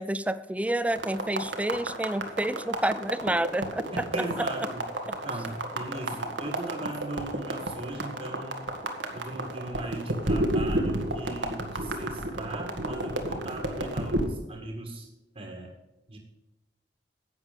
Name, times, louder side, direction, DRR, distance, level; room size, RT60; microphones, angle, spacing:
voice 1, 0.0-4.3, right 1 dB, 10° right, 15 dB, 0.5 m, -29 dB
sound 1, 0.9-14.3, right 1 dB, 80° right, 1.8 m, -31 dB
voice 2, 3.9-4.9 5.2-8.7 9.1-15.1 15.3-15.7 16.1-16.2, right 1 dB, 35° right, 1 dB, 1.7 m, -38 dB
11.5 x 8.4 x 5.1 m, 1.0 s
head